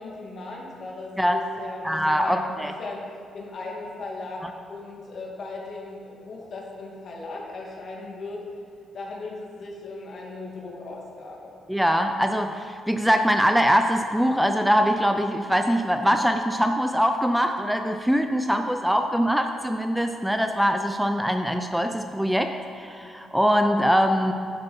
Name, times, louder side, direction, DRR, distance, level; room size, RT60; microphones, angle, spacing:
voice 1, 0.0-3.0 3.3-8.4 8.9-11.5, left 3 dB, 50° left, -2 dB, 2.3 m, -37 dB
voice 2, 1.8-2.7 11.7-22.5 22.8-24.3, equal, ahead, 6 dB, 0.5 m, -22 dB
10.0 x 7.9 x 5.4 m, 2.4 s
cardioid pair, 90°, 0 cm